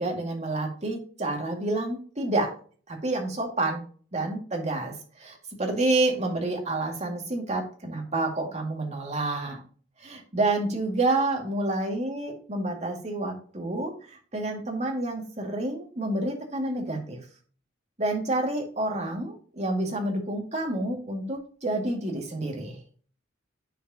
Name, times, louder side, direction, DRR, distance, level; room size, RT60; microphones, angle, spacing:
voice 1, 0.0-2.5 2.9-3.8 4.1-9.6 10.0-17.2 18.0-22.8, right 2 dB, 35° right, 1 dB, 2.1 m, -29 dB
10.0 x 4.8 x 2.8 m, 0.42 s
head